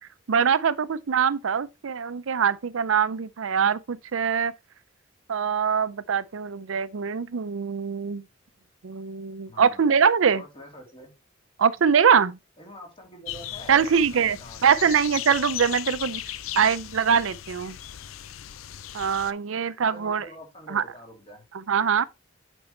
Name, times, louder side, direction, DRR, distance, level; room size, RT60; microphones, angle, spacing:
voice 1, 0.3-4.5 5.3-8.2 8.8-10.4 11.6-12.4 13.7-14.4 14.6-16.2 16.6-17.8 18.9-20.3 20.7-20.8 21.5-22.0, right 7 dB, 75° right, 0.5 m, -23 dB
voice 2, 9.5-9.9 10.3-11.1 12.6-14.9 19.8-21.4, equal, 30° left, 3.0 m, -45 dB
sound 1, 13.3-19.3, left 12 dB, 85° left, 0.5 m, -37 dB
8.7 x 5.4 x 3.2 m
head